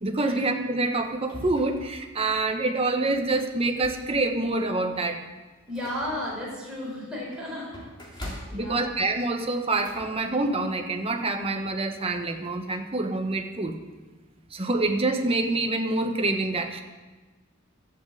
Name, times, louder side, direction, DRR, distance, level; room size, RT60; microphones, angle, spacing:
voice 1, 0.0-5.2 8.5-13.8 14.5-16.8, right 2 dB, 30° right, 5 dB, 1.1 m, -26 dB
sound 1, 0.9-2.2 2.6-2.7 3.2-4.4 4.9-5.0 5.4-10.1, left 1 dB, 25° left, 2.8 m, -44 dB
voice 2, 5.7-7.7 8.0-8.9, left 1 dB, 5° right, -6 dB, 4.5 m, -34 dB
12.5 x 7.7 x 7.6 m, 1.2 s
head